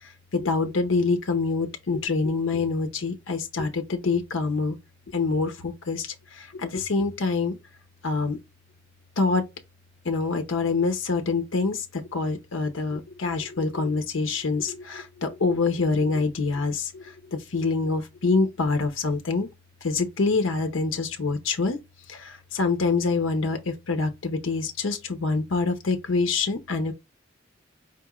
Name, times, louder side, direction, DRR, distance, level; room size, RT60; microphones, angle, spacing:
voice 1, 0.0-4.8 5.1-7.6 8.0-8.4 9.2-9.4 10.0-19.5 19.8-21.8 22.1-26.9, left 4 dB, 90° left, 0.7 m, -26 dB
5.1 x 2.9 x 2.4 m
head